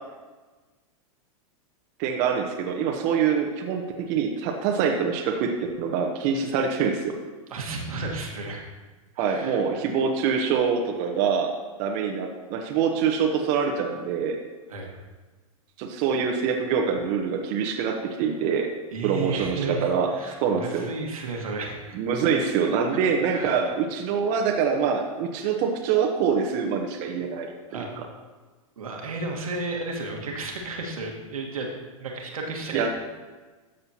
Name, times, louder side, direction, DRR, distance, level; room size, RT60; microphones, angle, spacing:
voice 1, 2.0-7.1 9.2-14.4 15.8-18.7 19.0-20.1 20.4-20.9 21.9-27.5 32.7-32.9, right 6 dB, 45° right, 2 dB, 1.0 m, -25 dB
voice 2, 7.5-8.6 9.1-9.6 14.7-14.9 18.9-22.0 22.9-23.0 23.3-23.6 27.7-28.0 28.8-31.7 32.0-32.9, right 3 dB, 80° right, 0 dB, 1.6 m, -33 dB
12.5 x 6.6 x 2.9 m, 1.3 s
hypercardioid pair, 105°, 18 cm